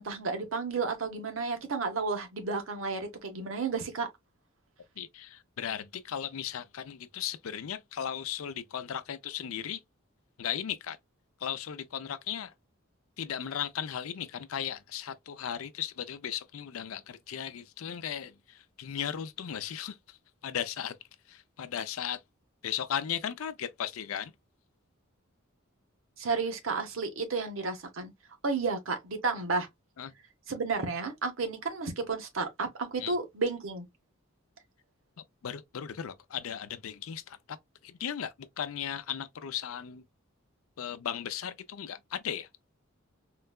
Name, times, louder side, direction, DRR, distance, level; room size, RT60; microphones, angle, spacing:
voice 1, 0.0-4.1 26.2-28.1 28.4-29.7 30.5-33.9, right 4 dB, 75° right, 0.9 m, -32 dB
voice 2, 5.0-9.8 10.4-11.0 11.4-12.5 13.2-20.0 20.4-21.0 21.3-22.2 22.6-24.3 30.0-30.1 33.0-33.1 35.4-37.6 37.8-40.0 40.8-42.5, left 9 dB, 90° left, 0.5 m, -36 dB
3.8 x 2.2 x 2.2 m
head